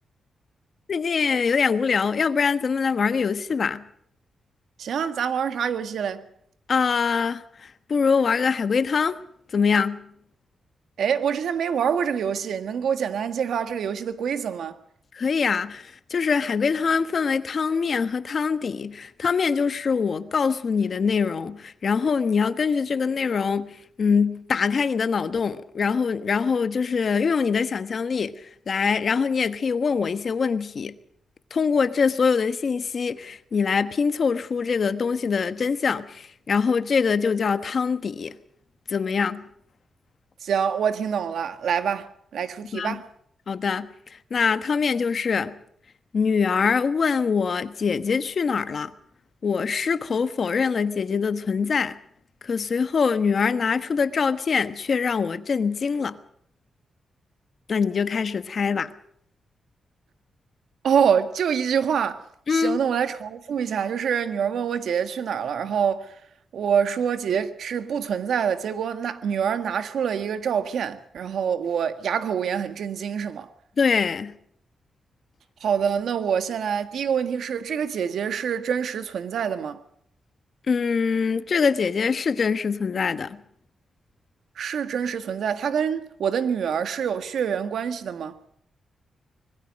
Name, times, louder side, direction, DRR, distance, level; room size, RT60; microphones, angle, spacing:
voice 1, 0.9-3.8 6.7-9.2 9.5-10.0 15.1-30.9 31.5-38.3 38.9-39.4 42.7-43.0 43.5-45.6 46.1-48.9 49.4-52.0 52.4-56.2 57.7-58.9 62.5-62.8 73.8-74.3 80.7-83.4, left 5 dB, 50° left, 1.3 m, -24 dB
voice 2, 4.8-6.2 11.0-14.8 40.4-43.1 60.8-62.2 62.5-66.2 66.5-73.5 75.6-79.8 84.5-88.4, right 7 dB, 80° right, 1.7 m, -26 dB
25.0 x 21.0 x 5.4 m
wide cardioid pair, 125°, 0 cm